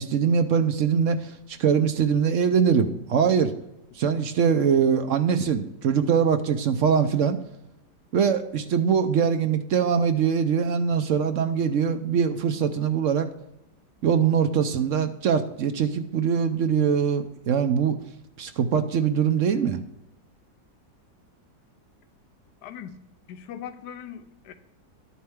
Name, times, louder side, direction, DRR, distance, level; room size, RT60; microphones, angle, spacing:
voice 1, 0.0-3.5 4.0-7.4 8.1-13.3 14.0-18.0 18.4-19.8, right 7 dB, 65° right, 0.8 m, -22 dB
voice 2, 22.6-23.0 23.3-24.5, left 9 dB, 70° left, 1.3 m, -40 dB
11.5 x 8.7 x 3.5 m
omnidirectional pair, 1.9 m